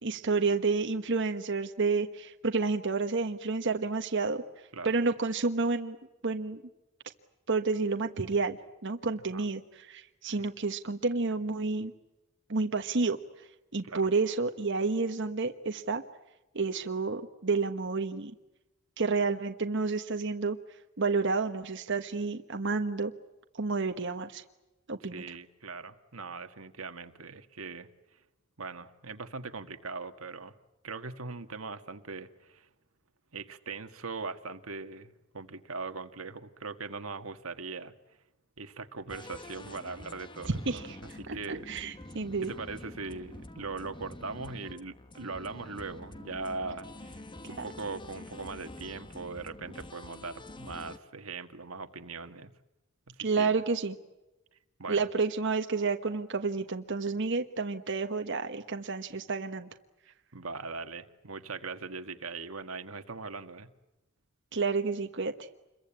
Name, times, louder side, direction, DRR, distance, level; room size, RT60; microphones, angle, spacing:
voice 1, 0.0-6.0 6.2-6.6 7.5-11.9 12.5-16.0 16.5-18.3 19.0-20.6 21.0-23.1 23.5-24.4 24.9-25.3 40.5-42.5 47.4-47.6 53.2-54.0 54.9-59.7 64.5-65.3, right 4 dB, 60° right, 6 dB, 1.3 m, -30 dB
voice 2, 25.1-27.9 28.6-30.5 30.8-32.7 33.3-37.9 38.6-41.7 42.4-52.5 53.2-53.5 54.8-55.1 60.3-63.7, right 4 dB, 85° right, 8 dB, 1.7 m, -40 dB
sound 1, 39.1-51.0, left 1 dB, 25° left, 1.3 m, -47 dB
28.0 x 22.5 x 8.8 m, 1.0 s
head